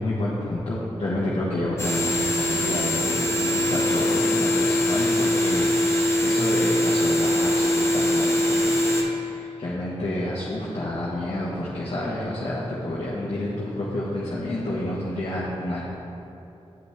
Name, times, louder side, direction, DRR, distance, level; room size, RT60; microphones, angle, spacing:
voice 1, 0.0-8.8 9.6-15.8, left 1 dB, 60° left, -8 dB, 1.3 m, -29 dB
sound 1, 1.8-9.0, left 1 dB, 25° left, 1.3 m, -22 dB
9.2 x 5.4 x 3.2 m, 2.9 s
cardioid pair, 40°, 12 cm